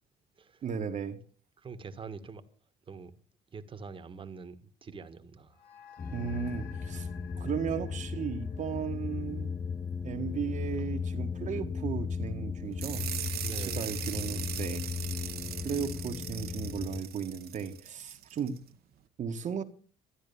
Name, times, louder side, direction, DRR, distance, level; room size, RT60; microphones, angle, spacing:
voice 1, 0.6-1.2 6.1-7.1 7.4-9.5 10.0-13.1 13.8-14.9 15.6-18.6 19.2-19.6, right 7 dB, 45° right, 1.5 m, -35 dB
voice 2, 1.6-2.4 2.9-3.1 3.5-5.6 13.4-14.0, right 5 dB, 30° right, 1.5 m, -44 dB
sound 1, 5.5-10.2, left 8 dB, 65° left, 2.1 m, -55 dB
sound 2, 6.0-17.0, left 5 dB, 25° left, 0.7 m, -36 dB
sound 3, 12.8-18.6, right 11 dB, 65° right, 1.3 m, -40 dB
13.0 x 9.9 x 7.0 m
cardioid pair, 110°, 17 cm